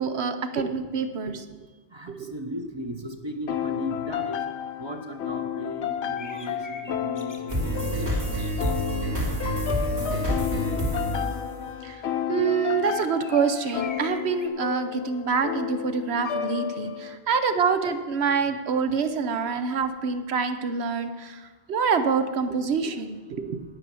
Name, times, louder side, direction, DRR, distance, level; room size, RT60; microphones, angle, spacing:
voice 1, 0.0-1.5 2.1-2.3 11.8-12.0 12.3-23.6, right 5 dB, 70° right, 9 dB, 1.1 m, -26 dB
voice 2, 1.9-4.5 4.8-11.3 23.3-23.4, equal, 25° right, 5 dB, 0.9 m, -38 dB
sound 1, 3.5-17.2, left 9 dB, 80° left, 0.9 m, -32 dB
sound 2, 6.1-9.0 12.7-14.5, left 3 dB, 20° left, 0.9 m, -46 dB
sound 3, 7.5-12.2, right 1 dB, 55° right, 2.8 m, -28 dB
9.7 x 8.8 x 6.9 m, 1.3 s
omnidirectional pair, 1.1 m